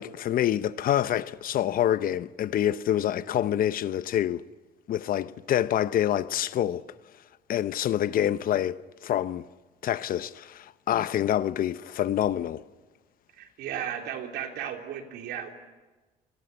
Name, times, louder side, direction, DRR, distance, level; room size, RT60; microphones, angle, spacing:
voice 1, 0.0-4.4 4.9-6.8 7.5-9.4 9.8-12.6, left 11 dB, 55° left, 0.9 m, -26 dB
voice 2, 13.4-15.5, right 9 dB, 85° right, 3.6 m, -35 dB
28.5 x 21.5 x 9.6 m
cardioid pair, 110°, 17 cm